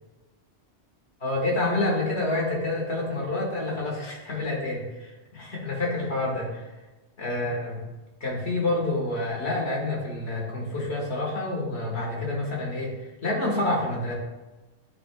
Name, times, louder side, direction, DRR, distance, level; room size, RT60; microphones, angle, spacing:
voice 1, 1.2-6.6 7.2-7.8 8.2-12.9 13.2-14.1, left 2 dB, 65° left, -2 dB, 1.8 m, -28 dB
9.7 x 4.5 x 2.2 m, 1.1 s
omnidirectional pair, 1.2 m